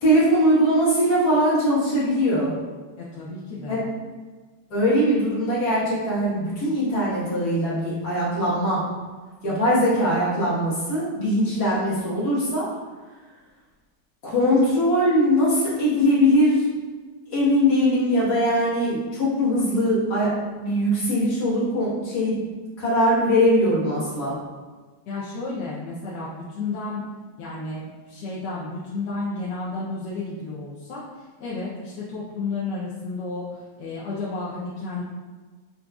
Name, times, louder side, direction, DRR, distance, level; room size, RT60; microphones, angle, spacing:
voice 1, 0.0-2.5 3.7-3.8 4.7-9.0 9.4-12.7 14.2-16.7 17.3-22.5 22.8-24.4, equal, 65° left, -8 dB, 1.9 m, -21 dB
voice 2, 3.0-3.9 25.1-27.1 27.4-35.0, left 3 dB, 85° left, -7 dB, 1.3 m, -32 dB
6.1 x 2.5 x 2.3 m, 1.4 s
omnidirectional pair, 1.9 m